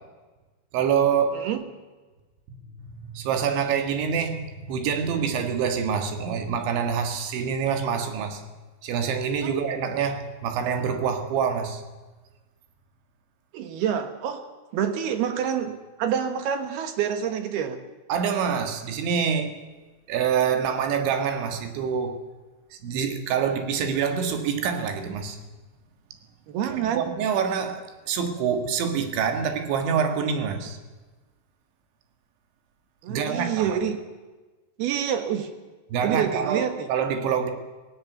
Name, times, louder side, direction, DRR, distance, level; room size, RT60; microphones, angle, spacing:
voice 1, 0.7-1.5 2.5-2.6 2.9-8.4 8.8-11.8 18.1-19.6 20.1-22.2 22.7-25.4 26.6-30.8 33.1-33.8 35.9-37.5, right 7 dB, 90° right, 4.2 m, -26 dB
voice 2, 13.5-14.4 14.7-17.8 26.5-27.1 33.0-34.0 34.8-35.5 36.0-36.9, right 9 dB, 70° right, 3.2 m, -27 dB
17.5 x 17.0 x 9.3 m
omnidirectional pair, 5.1 m